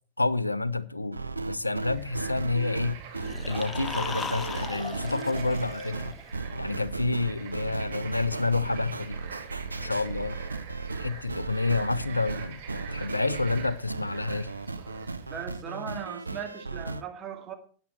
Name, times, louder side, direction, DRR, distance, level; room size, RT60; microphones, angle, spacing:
voice 1, 0.2-1.2 1.5-3.0 3.5-6.1 6.6-9.2 9.8-10.4 11.0-12.6 12.9-14.5, left 3 dB, 85° left, 0.7 m, -29 dB
sound 1, 1.1-17.0, right 3 dB, 80° right, 0.7 m, -36 dB
Bird / Frog, 1.7-15.5, right 7 dB, 50° right, 4.2 m, -45 dB
sound 2, 3.2-6.3, left 5 dB, 20° left, 0.8 m, -37 dB
voice 2, 15.3-17.5, right 8 dB, 25° right, 2.3 m, -38 dB
13.0 x 9.6 x 4.3 m
figure-of-eight pair, 90°, 0 cm